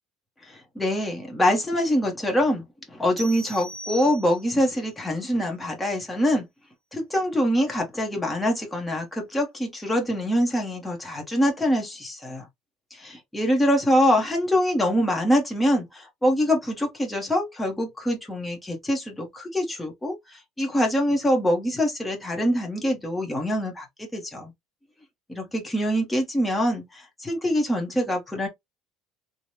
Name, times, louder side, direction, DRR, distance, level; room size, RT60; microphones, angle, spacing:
voice 1, 0.4-6.5 6.9-12.5 12.9-24.5 25.3-28.5, equal, 5° left, 0.8 m, -24 dB
sound 1, 3.2-4.7, right 1 dB, 45° right, 1.2 m, -39 dB
3.2 x 2.0 x 2.7 m
cardioid pair, 155°, 0 cm